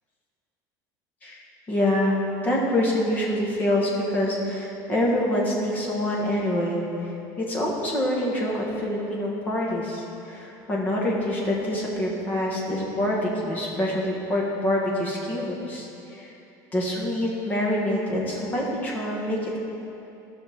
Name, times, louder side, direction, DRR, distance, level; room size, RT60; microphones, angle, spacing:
voice 1, 1.7-6.8 7.4-16.3 16.7-19.6, left 1 dB, 20° left, -4 dB, 1.5 m, -26 dB
16.0 x 5.7 x 3.6 m, 2.9 s
cardioid pair, 175°, 8 cm